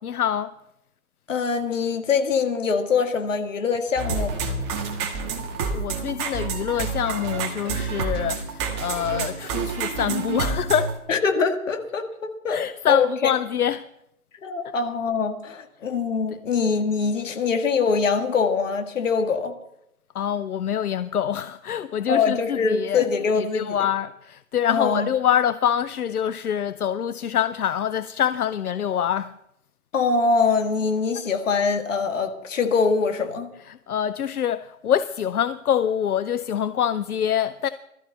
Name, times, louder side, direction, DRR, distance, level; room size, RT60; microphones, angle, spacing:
voice 1, 0.0-0.5 5.7-10.9 12.5-13.9 14.6-14.7 16.3-16.4 20.1-29.3 33.5-37.7, left 9 dB, 80° left, 0.7 m, -25 dB
voice 2, 1.3-4.4 11.1-13.3 14.4-19.5 22.1-23.8 24.7-25.1 29.9-33.5, left 5 dB, 60° left, 2.1 m, -23 dB
sound 1, 4.0-11.0, right 5 dB, 20° right, 1.4 m, -28 dB
19.5 x 13.5 x 4.1 m
hypercardioid pair, 150°, 44 cm